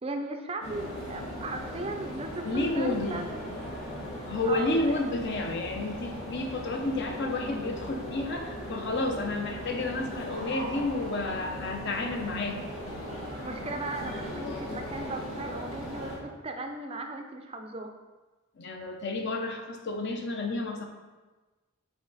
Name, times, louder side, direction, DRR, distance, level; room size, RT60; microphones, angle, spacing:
voice 1, 0.0-3.4 4.2-5.1 13.4-17.9, right 2 dB, 25° right, 5 dB, 0.5 m, -37 dB
sound 1, 0.6-16.2, equal, 70° left, 1.8 m, -38 dB
voice 2, 2.4-3.2 4.3-12.6 18.6-20.9, left 2 dB, 50° left, 3 dB, 0.7 m, -31 dB
7.1 x 4.6 x 4.0 m, 1.2 s
head